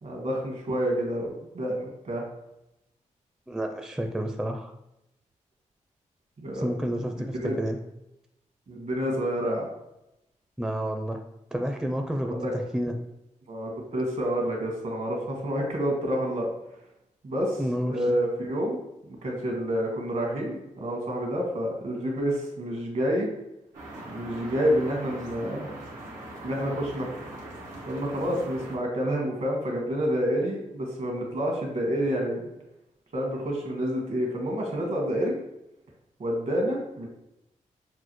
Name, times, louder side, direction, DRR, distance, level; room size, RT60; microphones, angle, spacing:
voice 1, 0.0-2.2 6.4-6.7 7.1-7.5 8.7-9.6 12.2-12.5 13.5-16.5 17.2-18.8 19.1-23.3 24.1-25.7 26.4-27.2 27.9-32.4 33.1-35.3 36.2-37.1, equal, 60° right, 0 dB, 1.4 m, -28 dB
voice 2, 3.5-4.7 6.5-7.8 10.6-11.2 11.5-12.9 17.6-18.0, equal, 5° right, 4 dB, 0.4 m, -30 dB
sound 1, 23.7-28.8, right 1 dB, 90° right, 1.2 m, -41 dB
6.1 x 2.3 x 3.0 m, 0.87 s
cardioid pair, 65°, 13 cm